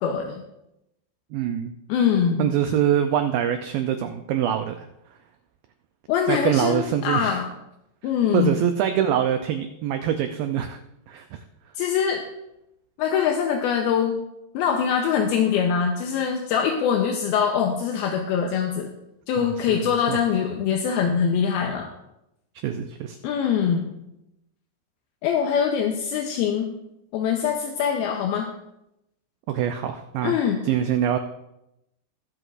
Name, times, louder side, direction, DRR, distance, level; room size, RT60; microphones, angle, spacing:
voice 1, 0.0-0.4 1.9-2.5 6.1-7.5 8.0-8.6 11.8-12.2 13.0-14.2 14.5-18.9 19.3-21.9 23.2-23.9 25.2-26.7 27.1-28.5 30.2-30.6, left 7 dB, 80° left, 2 dB, 2.5 m, -23 dB
voice 2, 1.3-1.7 2.4-4.9 6.3-7.4 8.0-10.8 11.1-11.4 19.4-20.2 22.6-23.2 29.5-30.4 30.6-31.2, right 10 dB, 90° right, 7 dB, 2.0 m, -25 dB
21.5 x 7.9 x 2.5 m, 0.87 s
omnidirectional pair, 4.8 m